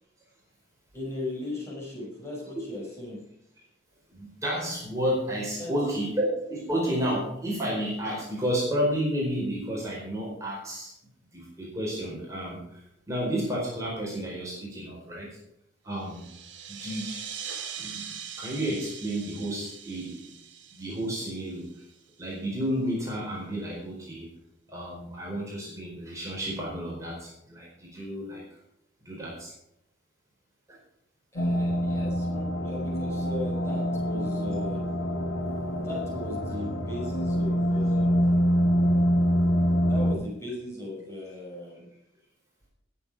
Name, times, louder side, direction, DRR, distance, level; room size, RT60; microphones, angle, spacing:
voice 1, 0.9-3.2 5.6-5.7 31.3-34.8 35.7-38.3 39.9-41.9, left 2 dB, 15° left, -4 dB, 6.1 m, -37 dB
voice 2, 4.1-10.9 11.3-15.4 15.8-16.3 16.7-17.2 17.8-20.4 20.7-21.7 22.2-24.3 24.7-28.4 29.0-29.5 30.7-30.8, equal, 15° right, -4 dB, 4.5 m, -31 dB
sound 1, 16.0-22.1, right 7 dB, 75° right, 2.2 m, -41 dB
sound 2, 31.4-40.1, equal, 90° left, 1.7 m, -25 dB
19.5 x 7.7 x 4.8 m, 0.77 s
head